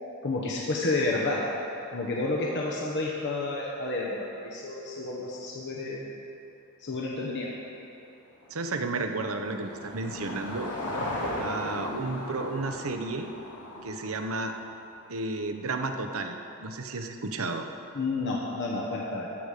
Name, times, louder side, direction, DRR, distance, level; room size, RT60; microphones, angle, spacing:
voice 1, 0.2-1.4 1.9-6.1 6.8-7.5 17.9-19.3, left 2 dB, 55° left, -3 dB, 1.1 m, -30 dB
Car passing by / Engine, 8.4-14.8, left 1 dB, 85° left, 2.1 m, -37 dB
voice 2, 8.5-10.7 11.4-13.3 13.8-14.5 15.1-17.7, right 3 dB, 65° right, 6 dB, 0.8 m, -32 dB
15.0 x 5.3 x 6.5 m, 2.9 s
head